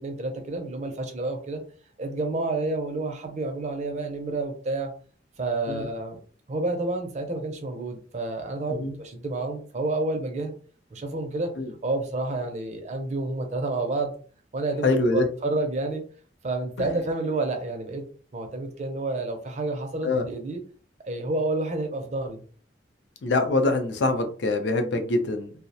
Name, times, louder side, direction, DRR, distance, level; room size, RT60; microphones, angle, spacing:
voice 1, 0.0-1.6 2.0-4.9 5.4-6.2 6.5-10.5 10.9-11.5 11.8-14.1 14.5-14.9 15.1-16.0 16.4-18.0 18.3-20.6 21.1-22.4, right 2 dB, 40° right, 4 dB, 0.5 m, -29 dB
voice 2, 14.8-15.3 16.8-17.0 20.0-20.3 23.2-25.5, left 2 dB, 70° left, 5 dB, 0.5 m, -24 dB
2.3 x 2.0 x 2.6 m, 0.42 s
head